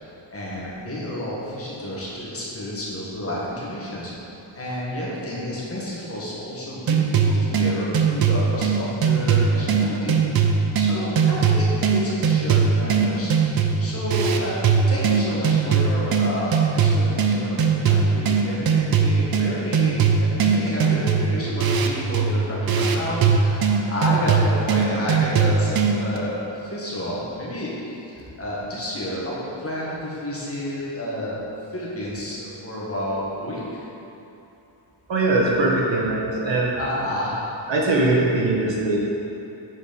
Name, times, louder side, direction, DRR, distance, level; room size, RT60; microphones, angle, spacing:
voice 1, 0.3-4.3 4.5-10.2 10.7-31.4 31.7-33.8 36.7-37.4 37.8-38.2, left 1 dB, 30° left, -6 dB, 1.6 m, -30 dB
sound 1, 6.9-26.2, right 6 dB, 50° right, 0.6 m, -21 dB
voice 2, 35.1-36.8 37.7-39.1, right 2 dB, 65° right, -3 dB, 1.5 m, -21 dB
8.1 x 4.7 x 5.2 m, 2.9 s
wide cardioid pair, 160°, 47 cm